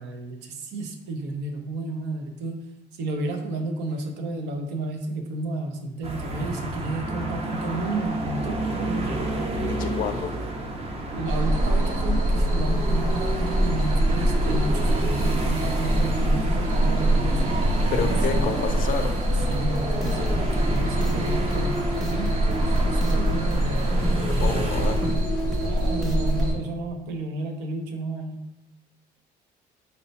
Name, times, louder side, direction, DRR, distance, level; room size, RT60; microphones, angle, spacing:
voice 1, 0.0-2.6 2.9-9.4 11.1-17.4 18.3-18.8 19.3-24.0 25.6-28.4, right 2 dB, 85° right, 4 dB, 0.6 m, -32 dB
sound 1, 6.0-25.2, right 2 dB, 35° right, 0.6 m, -30 dB
voice 2, 9.8-10.4 17.9-19.1 24.3-25.0, left 7 dB, 55° left, 8 dB, 0.4 m, -29 dB
sound 2, 11.2-26.5, right 1 dB, 55° right, 1.0 m, -24 dB
sound 3, 19.5-26.5, left 1 dB, ahead, 0.6 m, -32 dB
4.1 x 2.1 x 4.0 m, 0.90 s
cardioid pair, 110°, 17 cm